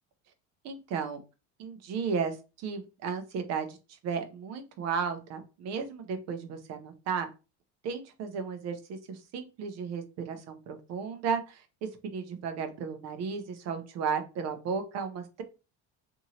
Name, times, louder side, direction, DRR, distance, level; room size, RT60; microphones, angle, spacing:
voice 1, 0.6-1.2 1.6-3.8 4.0-7.3 7.8-15.4, right 6 dB, 50° right, 7 dB, 0.6 m, -34 dB
2.8 x 2.7 x 2.7 m, 0.30 s
cardioid pair, 160°, 33 cm